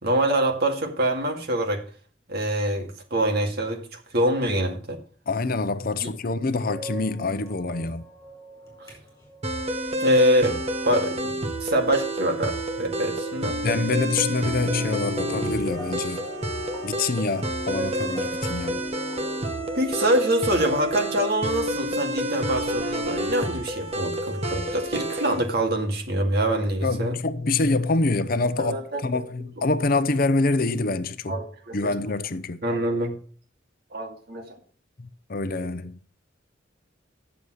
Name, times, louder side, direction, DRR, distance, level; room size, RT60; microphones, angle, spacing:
voice 1, 0.0-1.8 2.3-5.0 8.8-8.9 10.0-10.6 10.8-13.6 19.7-27.2 28.6-29.0 31.3-31.9 32.6-33.2 33.9-34.5, right 1 dB, 55° right, 2.2 m, -25 dB
voice 2, 5.3-8.0 13.6-16.2 16.8-18.8 26.8-28.8 29.0-31.3 31.7-32.6 35.0-36.0, left 3 dB, 50° left, 0.7 m, -26 dB
sound 1, 6.7-11.0 11.5-11.8 14.6-20.0, left 1 dB, 15° left, 4.9 m, -38 dB
sound 2, 9.4-25.5, right 1 dB, 35° right, 1.2 m, -29 dB
9.5 x 7.1 x 6.3 m
head